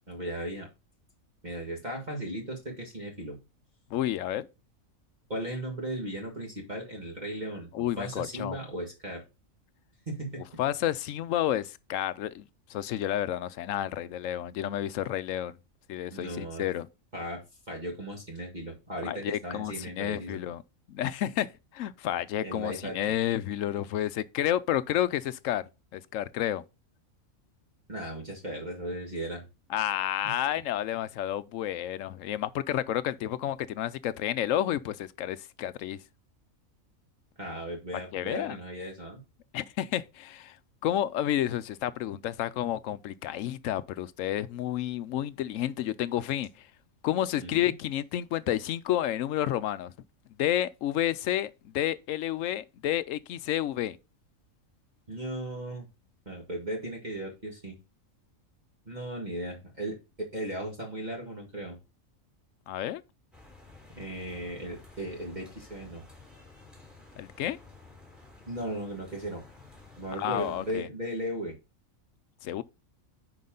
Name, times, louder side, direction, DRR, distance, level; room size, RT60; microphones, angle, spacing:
voice 1, 0.1-0.7 1.4-3.4 5.3-9.2 10.1-10.4 16.1-16.7 17.1-17.4 17.7-20.4 22.4-23.0 27.9-29.4 30.2-30.4 37.4-39.2 47.4-47.7 55.1-55.9 56.3-57.8 58.9-61.8 64.0-66.0 68.5-69.4 70.0-71.6, right 1 dB, 35° right, 1.9 m, -36 dB
voice 2, 3.9-4.5 7.7-8.6 10.6-12.4 12.7-15.5 15.9-16.9 19.0-20.6 20.9-25.6 25.9-26.6 29.7-36.0 38.1-38.6 39.5-40.6 40.8-46.7 47.0-49.9 50.4-54.0 62.7-63.0 67.2-67.6 70.1-70.9 72.4-72.6, left 12 dB, 75° left, 0.9 m, -30 dB
sound 1, 63.3-70.7, left 3 dB, ahead, 3.2 m, -52 dB
9.4 x 5.1 x 3.8 m
omnidirectional pair, 1.4 m